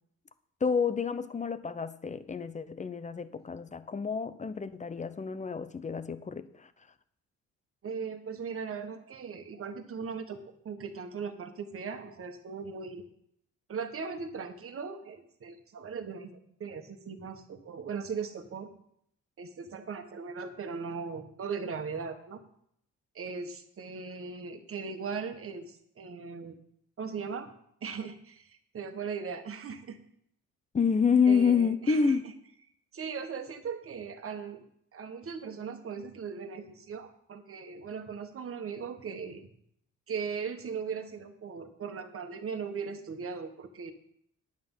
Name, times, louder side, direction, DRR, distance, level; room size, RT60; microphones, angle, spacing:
voice 1, 0.6-6.7 30.7-32.2, left 6 dB, 25° left, 13 dB, 0.7 m, -28 dB
voice 2, 7.8-13.0 13.7-16.3 16.6-18.7 19.4-22.4 23.1-26.5 27.0-27.5 27.8-30.0 31.3-32.2 32.9-34.6 34.9-39.5 40.1-43.9, right 5 dB, 45° right, 7 dB, 1.5 m, -38 dB
9.5 x 8.9 x 5.6 m, 0.70 s
cardioid pair, 90°, 30 cm